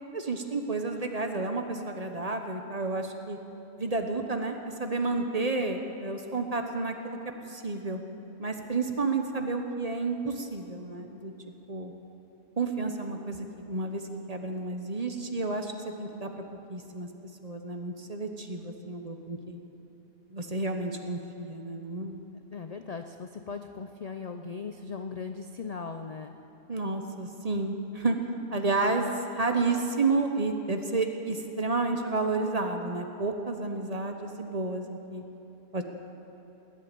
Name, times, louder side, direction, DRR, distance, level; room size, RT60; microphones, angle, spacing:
voice 1, 0.1-3.4 3.8-7.2 7.5-8.0 8.4-11.3 11.7-11.9 12.6-14.0 14.3-15.7 16.0-16.3 16.7-17.1 17.4-19.6 20.3-22.2 26.7-28.2 28.5-29.1 29.3-35.2 35.7-35.8, right 3 dB, 30° right, 5 dB, 1.0 m, -31 dB
voice 2, 22.5-26.3, left 5 dB, 65° left, 6 dB, 0.4 m, -38 dB
19.5 x 8.5 x 8.6 m, 3.0 s
omnidirectional pair, 1.5 m